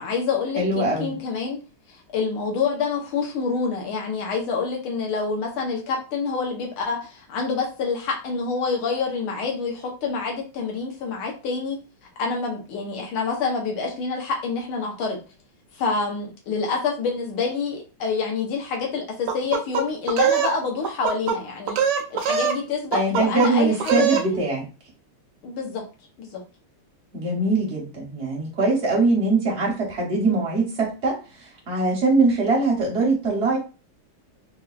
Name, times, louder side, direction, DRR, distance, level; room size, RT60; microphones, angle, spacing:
voice 1, 0.0-1.6 2.1-11.8 12.2-15.2 15.8-21.8 22.1-24.4 25.4-25.8 26.2-26.4, left 4 dB, 75° left, 0 dB, 1.8 m, -27 dB
voice 2, 0.6-1.2 22.9-24.6 27.1-33.6, right 3 dB, 45° right, -2 dB, 0.8 m, -22 dB
sound 1, 19.3-20.5 20.8-21.4 21.7-22.6 22.9-23.5 23.8-24.3, right 7 dB, 85° right, 0.9 m, -22 dB
4.7 x 2.3 x 2.4 m, 0.32 s
omnidirectional pair, 2.4 m